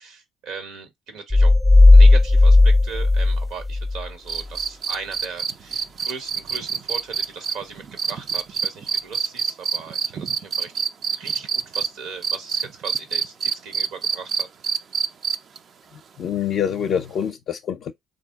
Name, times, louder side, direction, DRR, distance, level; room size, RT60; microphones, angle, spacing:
voice 1, 0.0-1.5 1.9-10.8 11.2-14.5, right 5 dB, 80° right, 1.4 m, -38 dB
sound 1, 1.3-4.1, left 2 dB, ahead, 0.5 m, -13 dB
sound 2, 4.3-11.9 12.2-15.6 17.2-17.3, right 6 dB, 55° right, 0.5 m, -25 dB
voice 2, 15.9-17.9, left 8 dB, 60° left, 0.5 m, -26 dB
3.8 x 2.6 x 3.6 m
supercardioid pair, 65°, 0 cm